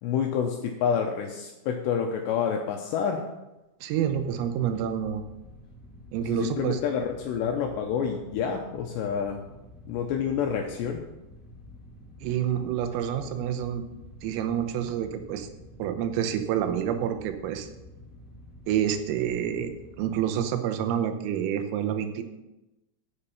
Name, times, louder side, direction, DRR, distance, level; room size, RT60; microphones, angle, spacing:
voice 1, 0.0-3.3 6.2-9.4 9.9-11.1, left 7 dB, 80° left, 3 dB, 2.6 m, -28 dB
voice 2, 3.8-5.2 6.1-6.8 12.2-13.9 14.2-15.5 15.8-17.7 18.7-19.7 20.0-22.2, right 9 dB, 90° right, 7 dB, 3.6 m, -28 dB
sound 1, 3.9-20.4, left 1 dB, 60° left, 0.8 m, -49 dB
9.9 x 8.2 x 5.7 m, 0.99 s
omnidirectional pair, 5.8 m